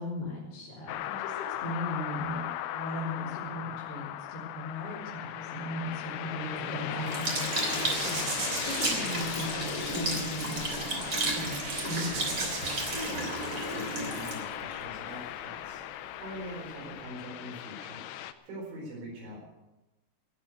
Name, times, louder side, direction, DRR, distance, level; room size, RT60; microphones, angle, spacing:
voice 1, 0.0-2.5 2.7-12.4, left 1 dB, 60° left, -8 dB, 5.5 m, -38 dB
sound 1, 0.9-18.3, left 12 dB, 80° left, 2.4 m, -38 dB
sound 2, 6.2-14.1, right 3 dB, 70° right, 5.2 m, -38 dB
Sink (filling or washing) / Liquid, 7.1-15.6 16.3-16.4, right 2 dB, 25° right, 3.1 m, -34 dB
voice 2, 13.0-18.0 18.4-19.5, equal, 85° right, -2 dB, 7.0 m, -43 dB
18.5 x 8.8 x 8.0 m, 1.0 s
omnidirectional pair, 5.3 m